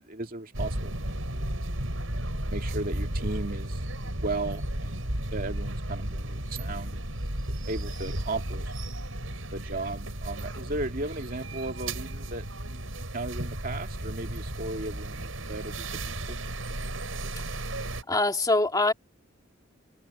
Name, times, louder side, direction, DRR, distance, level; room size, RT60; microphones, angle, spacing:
voice 1, 0.0-1.6 2.3-8.8 9.5-16.4, right 2 dB, 45° right, 2.3 m, -36 dB
sound 1, 0.5-18.0, right 1 dB, 85° right, 5.7 m, -34 dB
voice 2, 18.1-18.9, left 2 dB, 20° left, 2.6 m, -23 dB
head